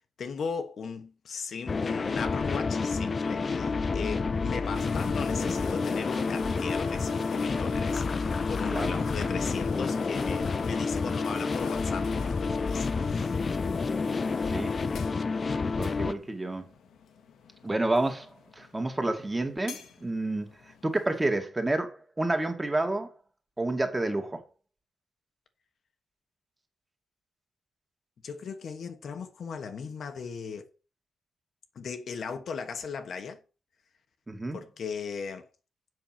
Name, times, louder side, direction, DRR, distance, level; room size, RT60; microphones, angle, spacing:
voice 1, 0.2-13.4 28.2-30.7 31.7-33.4 34.5-35.5, left 5 dB, 60° left, 1.3 m, -38 dB
sound 1, 1.7-16.1, left 4 dB, 35° left, 0.6 m, -29 dB
sound 2, 4.7-21.3, left 6 dB, 90° left, 1.7 m, -45 dB
voice 2, 8.7-9.3 14.5-14.7 15.5-16.7 17.6-18.3 18.6-20.5 20.8-23.1 23.6-24.4 34.3-34.6, right 2 dB, 15° right, 2.1 m, -29 dB
7.8 x 5.9 x 7.5 m
cardioid pair, 115°, 0 cm